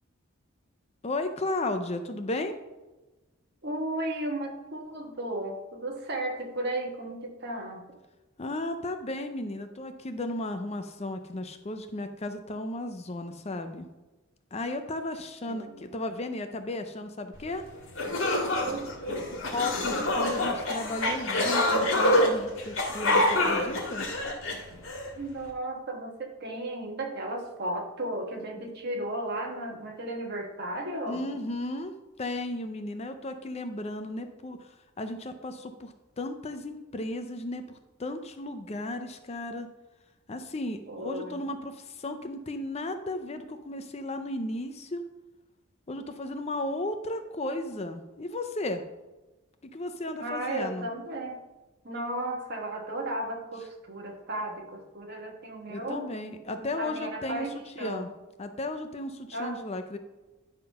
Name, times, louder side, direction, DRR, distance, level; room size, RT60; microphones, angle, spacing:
voice 1, 1.0-2.6 8.4-13.9 14.5-17.6 19.5-24.1 31.1-39.7 40.3-45.1 45.9-48.8 49.6-50.9 55.7-57.5 57.8-58.1 58.4-60.0, left 2 dB, 30° left, 8 dB, 0.5 m, -34 dB
voice 2, 3.6-7.8 15.5-15.9 18.6-19.4 25.1-31.3 40.9-41.5 50.2-51.4 51.8-56.1 56.5-58.1 59.3-59.6, right 1 dB, 50° right, 2 dB, 1.4 m, -35 dB
sound 1, 17.6-17.7 18.0-25.1, left 1 dB, 75° left, 1.7 m, -26 dB
10.0 x 3.7 x 5.6 m, 1.1 s
head